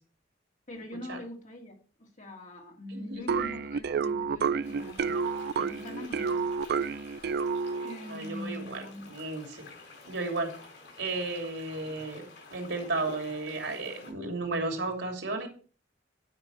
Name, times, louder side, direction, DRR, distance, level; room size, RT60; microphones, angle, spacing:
voice 1, 0.7-5.3 5.5-6.5 7.8-9.1, left 1 dB, 40° left, 2.5 m, -43 dB
voice 2, 2.9-3.2 8.1-9.7 10.0-10.5 11.0-12.2 12.5-15.5, right 3 dB, 80° right, 3.0 m, -34 dB
sound 1, 3.3-8.1, right 5 dB, 60° right, 0.4 m, -30 dB
sound 2, 4.6-14.1, left 3 dB, 70° left, 5.3 m, -50 dB
10.5 x 5.9 x 5.7 m
head